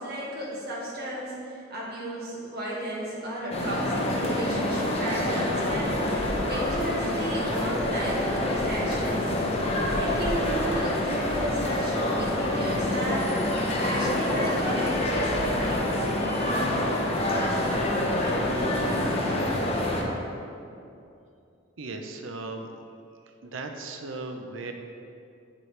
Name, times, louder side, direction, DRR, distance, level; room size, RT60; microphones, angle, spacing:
voice 1, 0.0-9.3 9.9-13.5 13.8-15.8 17.3-17.4, equal, 55° right, -5 dB, 1.9 m, -34 dB
Venice Ambience Crowd Low Rumble of Boats, 3.5-20.0, left 1 dB, 30° left, 0.9 m, -26 dB
voice 2, 21.8-22.7 23.2-24.7, right 3 dB, 85° right, 5 dB, 0.7 m, -37 dB
8.0 x 7.5 x 3.3 m, 2.5 s
head